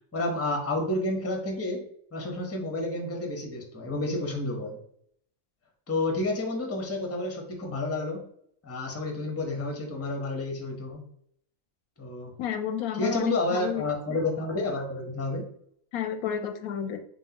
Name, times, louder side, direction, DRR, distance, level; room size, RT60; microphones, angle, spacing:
voice 1, 0.1-4.8 5.9-8.2 8.6-11.0 12.0-12.3 13.0-15.4, left 2 dB, 15° left, 2 dB, 0.7 m, -30 dB
voice 2, 12.4-13.8 14.1-14.2 15.9-17.0, left 9 dB, 85° left, 8 dB, 1.1 m, -31 dB
5.6 x 2.7 x 2.8 m, 0.67 s
omnidirectional pair, 1.5 m